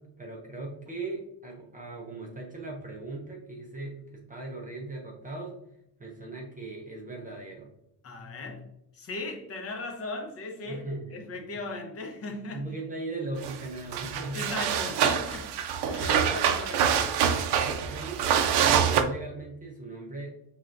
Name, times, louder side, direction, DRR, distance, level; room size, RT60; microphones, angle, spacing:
voice 1, 0.0-5.6 6.0-7.7 10.7-11.2 12.5-14.5 17.4-20.3, right 2 dB, 20° right, -1 dB, 0.5 m, -38 dB
voice 2, 8.0-8.6 8.9-10.8 11.1-12.7 14.3-17.2, left 2 dB, 35° left, 3 dB, 0.7 m, -38 dB
sound 1, 13.4-13.6 13.9-19.0, right 8 dB, 65° right, 0.6 m, -25 dB
5.9 x 3.3 x 2.5 m, 0.80 s
cardioid pair, 175°, 44 cm